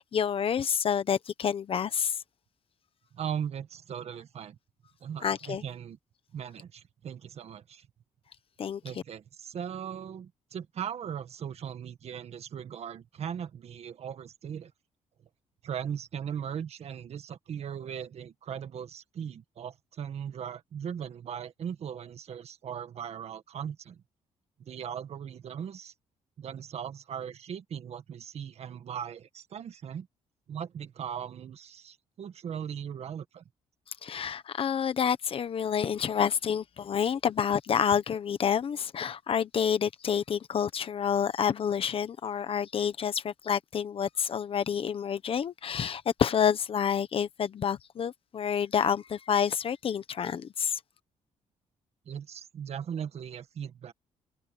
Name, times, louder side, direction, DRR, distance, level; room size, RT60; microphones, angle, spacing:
voice 1, 0.0-2.2 5.2-5.6 8.6-8.8 34.0-50.8, left 8 dB, 45° left, 1.2 m, -28 dB
voice 2, 3.1-4.6 5.0-6.0 6.3-7.9 8.8-14.7 15.6-24.0 24.6-25.9 26.4-30.1 30.5-33.4 52.1-53.9, right 8 dB, 55° right, 1.8 m, -38 dB
cardioid pair, 125°, 13 cm